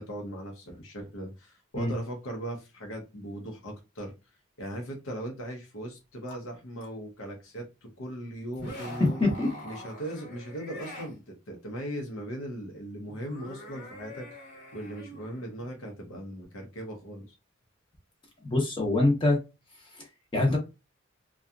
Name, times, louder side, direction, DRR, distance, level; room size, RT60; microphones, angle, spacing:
voice 1, 0.0-4.1 4.6-9.2 9.6-14.4 14.7-17.3, right 1 dB, 90° left, 0.7 m, -39 dB
sound 1, 6.3-6.4 6.8-6.9 8.5-11.1 13.1-15.7, left 1 dB, 55° left, 1.1 m, -44 dB
voice 2, 9.0-9.5 18.4-19.4 20.0-20.1 20.3-20.6, left 2 dB, 25° left, 0.7 m, -24 dB
2.7 x 2.3 x 2.3 m
head